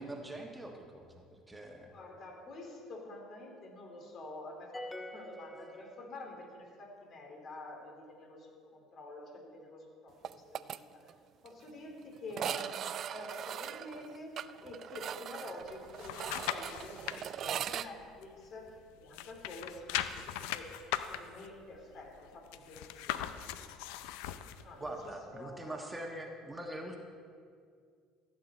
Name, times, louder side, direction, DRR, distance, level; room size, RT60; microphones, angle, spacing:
voice 1, 0.0-1.9 12.4-12.6 24.8-27.0, right 1 dB, 15° right, 2 dB, 1.4 m, -43 dB
voice 2, 1.9-11.0 11.4-20.7 21.1-23.3 24.6-25.9, left 2 dB, 50° left, 1 dB, 2.8 m, -48 dB
sound 1, 4.7-6.5, left 1 dB, 10° left, 0.9 m, -46 dB
sound 2, 10.2-10.8 11.1-11.2 11.5-11.6 12.3-17.9, right 9 dB, 50° right, 0.3 m, -40 dB
sound 3, 15.6-17.2 17.7-18.8 19.1-24.6 25.1-25.2, left 12 dB, 75° left, 0.5 m, -39 dB
15.0 x 7.9 x 4.2 m, 2.2 s
hypercardioid pair, 65°, 0 cm